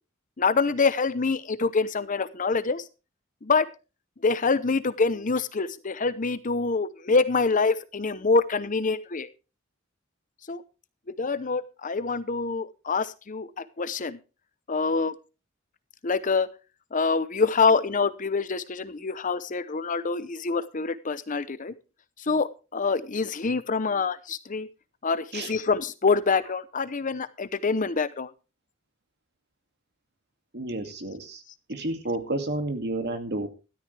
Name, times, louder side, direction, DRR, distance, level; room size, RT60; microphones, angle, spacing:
voice 1, 0.4-2.8 3.4-3.7 4.2-9.3 10.5-10.6 11.2-13.5 13.8-14.2 14.7-15.1 16.0-16.5 16.9-21.7 22.3-24.7 25.0-28.3, left 4 dB, 40° left, 14 dB, 0.8 m, -25 dB
voice 2, 30.5-31.4 31.7-33.5, right 2 dB, 55° right, 6 dB, 2.4 m, -31 dB
13.5 x 13.0 x 3.4 m, 0.31 s
head